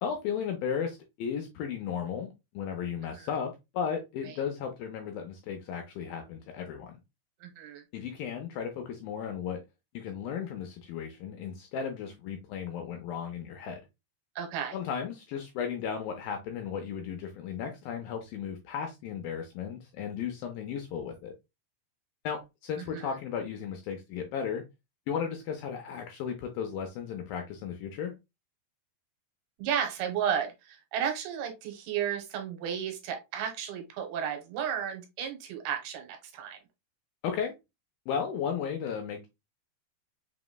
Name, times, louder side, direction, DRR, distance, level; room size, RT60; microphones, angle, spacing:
voice 1, 0.0-6.9 7.9-9.6 9.9-13.8 14.7-21.3 22.2-24.6 25.1-28.1 37.2-37.5 38.1-39.3, left 7 dB, 85° left, 2.1 m, -35 dB
voice 2, 7.4-7.8 14.4-14.8 22.9-23.1 29.6-36.6, right 8 dB, 80° right, 2.6 m, -33 dB
6.0 x 2.9 x 2.2 m
omnidirectional pair, 4.6 m